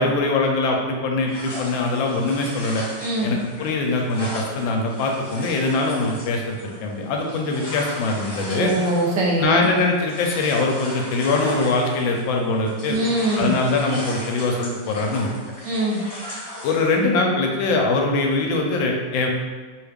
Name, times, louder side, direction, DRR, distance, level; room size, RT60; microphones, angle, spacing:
voice 1, 0.0-2.8 3.2-8.7 9.4-13.0 13.4-15.3 16.6-19.3, left 3 dB, 85° left, 1 dB, 1.3 m, -22 dB
sound 1, 1.3-12.4 12.6-17.0, left 1 dB, 50° left, 0.8 m, -37 dB
voice 2, 3.0-3.3 8.5-9.6 12.9-13.5 15.6-16.0, right 1 dB, 70° right, -3 dB, 1.2 m, -22 dB
3.1 x 2.4 x 3.3 m, 1.4 s
omnidirectional pair, 2.1 m